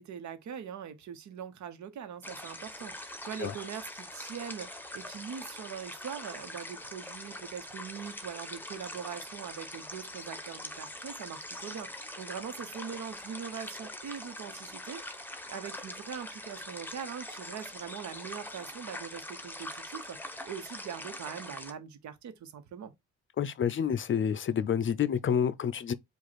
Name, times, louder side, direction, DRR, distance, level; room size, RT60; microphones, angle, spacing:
voice 1, 0.0-22.9, right 8 dB, 70° right, 1.1 m, -42 dB
sound 1, 2.2-21.7, left 1 dB, 5° left, 1.0 m, -43 dB
voice 2, 23.4-25.9, left 8 dB, 40° left, 0.5 m, -28 dB
4.8 x 2.5 x 4.1 m
cardioid pair, 90°, 30 cm